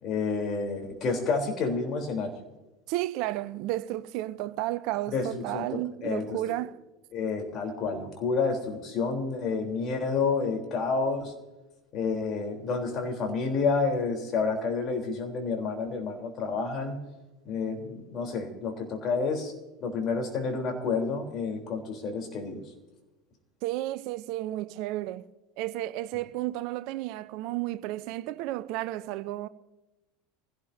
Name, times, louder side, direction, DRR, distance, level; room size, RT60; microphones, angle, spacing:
voice 1, 0.0-2.3 5.1-6.4 7.1-11.3 11.9-17.0 17.5-19.5 19.8-22.6, left 4 dB, 45° left, 3.5 m, -29 dB
voice 2, 2.9-6.8 23.6-25.3 25.6-29.5, right 16 dB, 55° right, 0.6 m, -32 dB
25.5 x 16.5 x 2.7 m
figure-of-eight pair, 80°, 0 cm